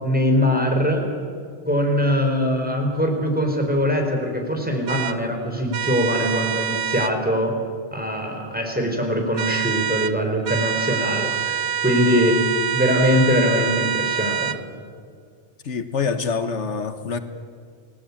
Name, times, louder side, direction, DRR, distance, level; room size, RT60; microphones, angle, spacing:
voice 1, 0.0-1.1 1.7-7.5 7.9-12.4 12.7-14.5, equal, 10° right, 1 dB, 5.0 m, -22 dB
sound 1, 4.9-5.2 5.7-7.1 9.3-10.1 10.4-14.6, right 8 dB, 70° right, 1.1 m, -25 dB
voice 2, 15.6-17.2, left 5 dB, 85° left, 9 dB, 1.6 m, -25 dB
29.5 x 19.5 x 8.7 m, 2.1 s
omnidirectional pair, 1.2 m